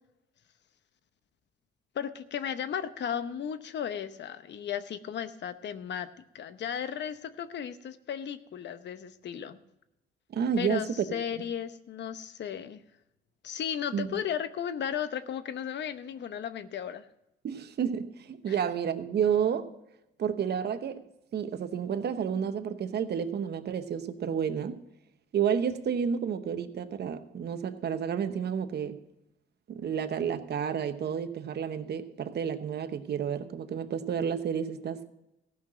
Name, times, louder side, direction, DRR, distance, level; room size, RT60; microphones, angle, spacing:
voice 1, 1.9-6.1 6.3-9.6 10.6-12.8 13.4-17.1 18.5-18.6, left 8 dB, 60° left, 0.9 m, -35 dB
voice 2, 10.3-11.1 13.9-14.2 17.4-19.7 20.2-21.0 21.3-24.8 25.3-29.0 29.7-35.1, right 7 dB, 55° right, 1.0 m, -30 dB
15.5 x 5.8 x 7.4 m
cardioid pair, 90°, 20 cm